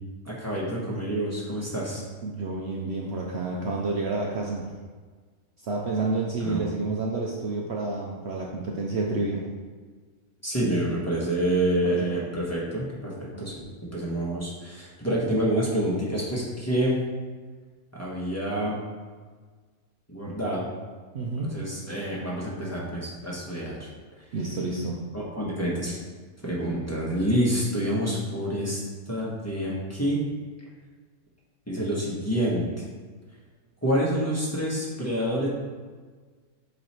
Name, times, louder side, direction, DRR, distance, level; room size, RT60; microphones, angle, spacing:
voice 1, 0.0-2.0 6.4-6.6 10.4-13.6 13.9-17.0 17.9-18.8 20.1-20.7 21.4-23.9 25.1-26.0 26.4-28.8 29.1-30.2 31.7-32.8 33.8-35.5, right 1 dB, 10° left, -6 dB, 1.2 m, -27 dB
voice 2, 2.2-4.7 5.6-9.4 11.8-12.0 13.3-13.4 21.1-21.5 24.3-25.0, right 3 dB, 60° right, -1 dB, 0.8 m, -29 dB
7.7 x 3.2 x 4.4 m, 1.5 s
omnidirectional pair, 1.4 m